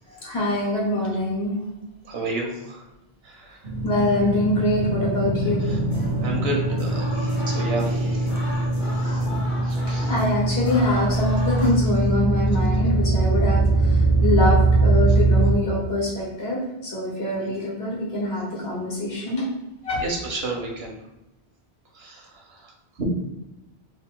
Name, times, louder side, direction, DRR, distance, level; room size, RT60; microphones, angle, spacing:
voice 1, 0.2-1.6 3.8-5.7 10.1-19.4 19.8-20.0, left 1 dB, 70° left, -4 dB, 1.5 m, -24 dB
voice 2, 2.0-2.8 3.2-3.6 5.6-5.8 6.2-8.6 8.9-9.3 9.6-10.1 17.5-17.6 20.0-20.9 21.9-22.7 23.0-23.1, right 2 dB, 70° right, 0 dB, 1.0 m, -32 dB
sound 1, 3.6-15.5, right 2 dB, 40° right, 0.5 m, -22 dB
sound 2, 5.9-11.7, equal, 50° left, 0.9 m, -37 dB
3.3 x 2.5 x 3.6 m, 0.95 s
omnidirectional pair, 1.1 m